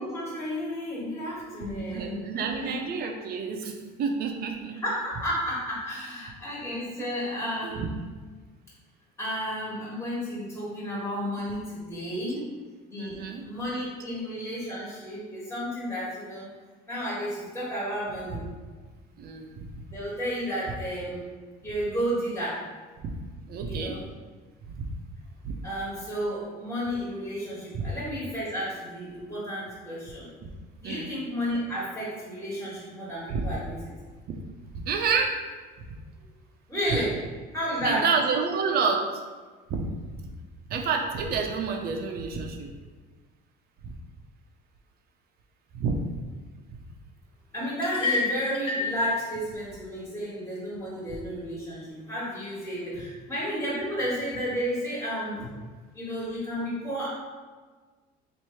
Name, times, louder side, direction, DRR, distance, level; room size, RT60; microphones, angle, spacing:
voice 1, 0.0-2.9 4.8-8.0 9.2-12.5 12.9-16.5 16.9-18.4 19.9-21.3 21.6-22.6 23.6-24.0 25.6-30.4 30.8-33.8 36.7-37.2 37.5-38.1 47.5-55.5 55.9-57.1, equal, 10° left, -8 dB, 1.5 m, -32 dB
voice 2, 1.6-4.8 6.6-6.8 7.6-7.9 13.0-13.4 19.2-19.7 23.0-23.1 23.5-24.0 24.7-24.9 25.4-25.5 27.7-27.9 30.8-31.1 33.3-33.5 34.9-35.3 37.8-39.0 39.7-39.8 40.7-42.7 43.8-43.9 45.7-46.0, right 5 dB, 50° right, 3 dB, 0.6 m, -29 dB
sound 1, 47.8-48.9, left 4 dB, 25° left, 0.9 m, -28 dB
3.1 x 2.6 x 4.3 m, 1.4 s
supercardioid pair, 105°, 20 cm